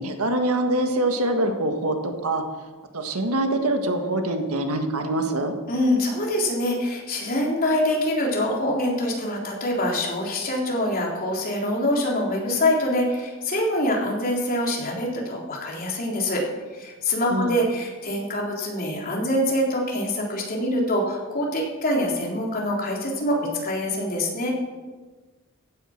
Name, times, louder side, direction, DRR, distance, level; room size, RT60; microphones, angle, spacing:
voice 1, 0.0-2.4 2.9-5.5 17.3-17.6, right 1 dB, 85° right, 5 dB, 1.7 m, -24 dB
voice 2, 5.7-16.4 16.7-24.5, left 1 dB, 40° left, -2 dB, 3.6 m, -25 dB
15.5 x 9.3 x 6.0 m, 1.3 s
head